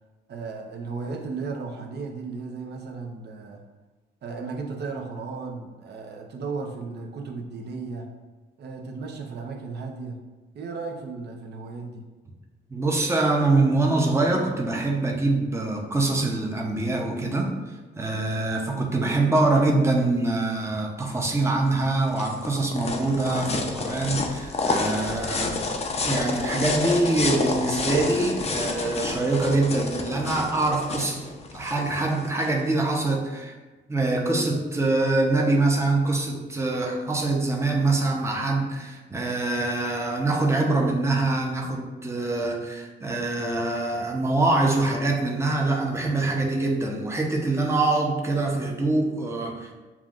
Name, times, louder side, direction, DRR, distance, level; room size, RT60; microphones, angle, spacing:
voice 1, 0.3-3.6 4.2-8.1 8.6-10.2 10.5-12.0, right 4 dB, 55° right, 2 dB, 0.8 m, -35 dB
voice 2, 12.7-17.5 18.0-25.6 26.0-31.2 31.5-33.5 33.9-49.7, right 2 dB, 15° right, 0 dB, 0.8 m, -24 dB
sound 1, 21.7-32.5, left 3 dB, 30° left, 0.6 m, -29 dB
7.0 x 2.4 x 2.5 m, 1.2 s
cardioid pair, 90°, 20 cm